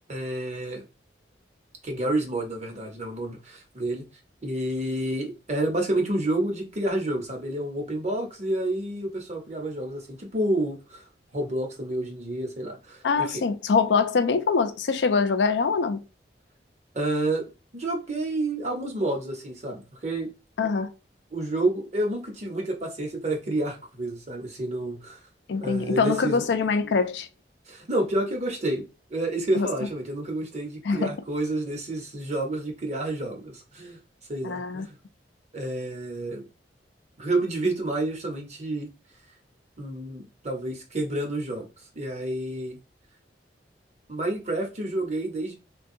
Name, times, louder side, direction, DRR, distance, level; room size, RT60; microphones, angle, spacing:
voice 1, 0.1-0.8 1.8-4.1 4.4-13.4 16.9-20.3 21.3-25.2 25.6-26.4 27.7-34.0 34.3-34.9 35.5-36.5 37.2-38.9 39.8-41.7 41.9-42.8 44.1-45.5, right 1 dB, 40° right, 1.0 m, -29 dB
voice 2, 13.0-16.0 20.6-20.9 25.5-27.3 29.5-29.7 30.8-31.1 34.4-34.9, left 5 dB, 75° left, 0.4 m, -24 dB
3.4 x 2.3 x 2.6 m
head